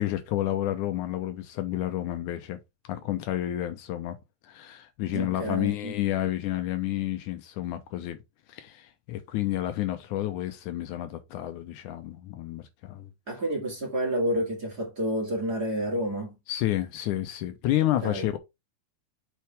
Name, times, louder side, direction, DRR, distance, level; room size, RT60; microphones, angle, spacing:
voice 1, 0.0-2.6 2.9-4.2 4.4-8.2 8.5-13.1 16.5-18.4, left 14 dB, 75° left, 2.1 m, -30 dB
voice 2, 5.1-6.0 13.3-16.4 17.8-18.3, right 1 dB, 35° right, 2.2 m, -30 dB
7.4 x 4.7 x 3.4 m
omnidirectional pair, 3.7 m